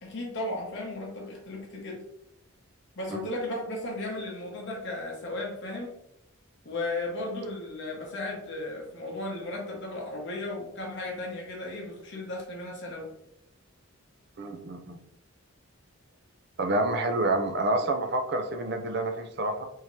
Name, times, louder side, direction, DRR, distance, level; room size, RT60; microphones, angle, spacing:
voice 1, 0.0-2.0 3.0-5.9 6.6-13.1, left 2 dB, 55° left, -2 dB, 0.8 m, -35 dB
voice 2, 14.4-15.0 16.6-19.7, right 2 dB, 50° right, 6 dB, 0.4 m, -28 dB
3.7 x 2.8 x 3.0 m, 0.79 s
head